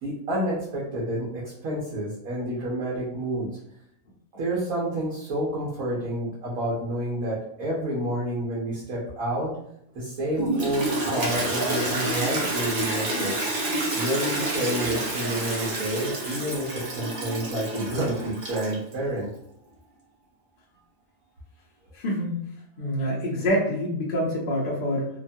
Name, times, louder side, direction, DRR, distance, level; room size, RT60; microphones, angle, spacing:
voice 1, 0.0-3.5 4.3-9.6 9.9-13.4 13.9-19.3, right 1 dB, 85° right, -6 dB, 1.2 m, -29 dB
Toilet flush, 10.3-18.9, right 2 dB, 50° right, 0.7 m, -28 dB
voice 2, 21.9-22.4 22.8-25.1, equal, 50° left, -4 dB, 0.7 m, -26 dB
2.9 x 2.2 x 2.6 m, 0.75 s
omnidirectional pair, 1.4 m